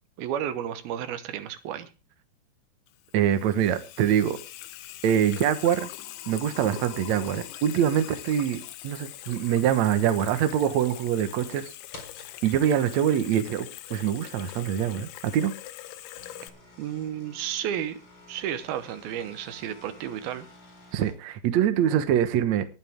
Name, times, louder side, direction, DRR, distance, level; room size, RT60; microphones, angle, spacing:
voice 1, 0.2-1.9 16.8-18.0 18.3-20.5, right 10 dB, 70° right, 11 dB, 2.6 m, -32 dB
Water tap faucet / Sink (filling or washing), 2.9-16.5, left 14 dB, 80° left, 3.2 m, -42 dB
voice 2, 3.1-4.4 5.0-5.9 6.3-11.7 12.4-15.5 20.9-22.7, right 10 dB, 85° right, 9 dB, 1.6 m, -24 dB
sound 1, 4.9-5.3 6.7-7.9 8.3-8.4 9.0-9.5 9.8-10.5 11.0-11.1 11.9-12.4 13.1-13.2 14.7-14.8 15.9-21.1, left 2 dB, 30° left, 4.6 m, -51 dB
20.0 x 9.1 x 3.6 m, 0.31 s
omnidirectional pair, 5.2 m